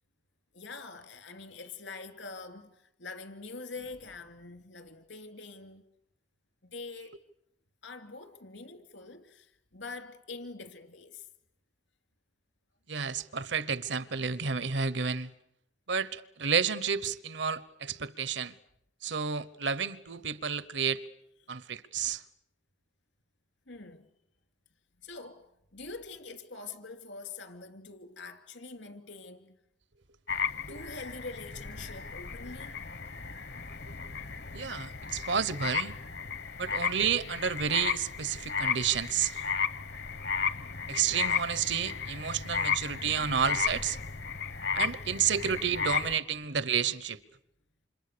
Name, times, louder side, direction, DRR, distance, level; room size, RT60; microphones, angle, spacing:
voice 1, 0.5-5.8 6.6-7.2 7.8-11.3 21.4-21.6 23.7-24.1 25.0-29.6 30.7-32.8 36.6-36.7 42.7-43.4 44.1-44.8 45.2-45.3 46.3-46.4, left 3 dB, 80° left, 3.0 m, -45 dB
voice 2, 12.9-15.3 15.9-18.5 19.0-21.0 21.5-22.2 34.5-35.9 36.6-39.4 40.9-44.0 44.7-47.2, right 7 dB, 75° right, 1.1 m, -30 dB
sound 1, 30.3-46.2, left 6 dB, 60° left, 1.0 m, -34 dB
29.0 x 27.0 x 6.9 m
head